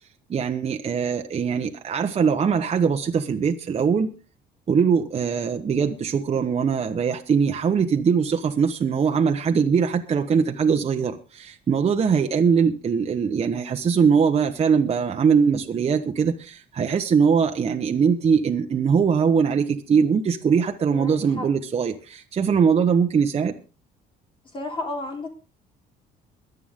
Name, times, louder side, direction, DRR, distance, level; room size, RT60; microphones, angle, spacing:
voice 1, 0.3-4.1 4.7-23.5, right 6 dB, 35° right, 4 dB, 1.3 m, -21 dB
voice 2, 20.9-21.5 24.5-25.3, left 2 dB, 30° left, 1 dB, 3.8 m, -32 dB
23.0 x 8.3 x 3.8 m, 0.34 s
cardioid pair, 110°, 17 cm